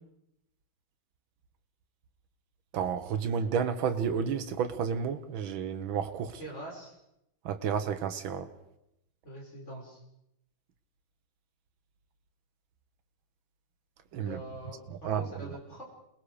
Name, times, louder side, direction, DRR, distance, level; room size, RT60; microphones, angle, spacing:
voice 1, 2.7-6.3 7.5-8.5 14.1-14.4 15.0-15.2, right 7 dB, 75° right, 1.9 m, -31 dB
voice 2, 6.4-6.9 9.2-10.0 14.2-15.8, right 1 dB, 35° left, 6.0 m, -44 dB
28.5 x 20.0 x 5.0 m
omnidirectional pair, 2.2 m